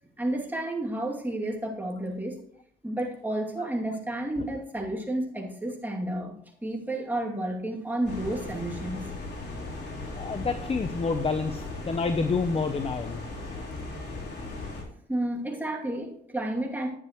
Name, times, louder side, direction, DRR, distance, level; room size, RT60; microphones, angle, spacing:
voice 1, 0.2-2.4 2.8-9.1 15.1-16.9, right 1 dB, 10° right, -1 dB, 2.6 m, -31 dB
sound 1, 8.0-14.8, left 2 dB, 60° left, 3.7 m, -37 dB
voice 2, 10.1-13.2, left 4 dB, 30° left, 10 dB, 0.8 m, -28 dB
11.0 x 9.2 x 3.1 m, 0.67 s
cardioid pair, 90°, 20 cm